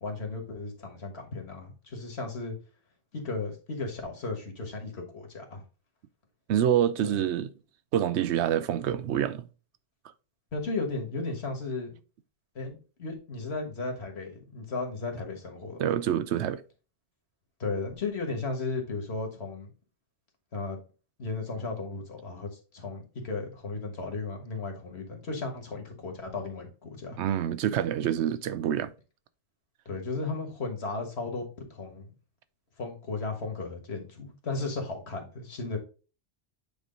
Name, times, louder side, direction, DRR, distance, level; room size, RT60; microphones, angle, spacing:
voice 1, 0.0-2.5 3.1-5.6 7.0-7.1 10.5-11.9 12.5-15.9 17.6-19.7 20.5-20.8 21.2-27.2 29.8-32.1 32.8-35.8, left 3 dB, 65° left, 1.6 m, -35 dB
voice 2, 6.5-7.5 7.9-9.4 15.8-16.6 27.2-28.9, right 10 dB, 75° right, 0.9 m, -26 dB
8.5 x 3.1 x 3.7 m
omnidirectional pair, 1.2 m